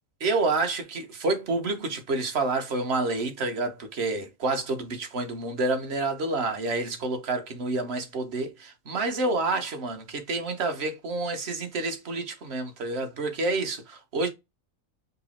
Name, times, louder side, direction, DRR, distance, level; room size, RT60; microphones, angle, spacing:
voice 1, 0.2-14.3, right 3 dB, 50° right, 1.3 m, -28 dB
5.4 x 2.0 x 4.2 m
omnidirectional pair, 1.4 m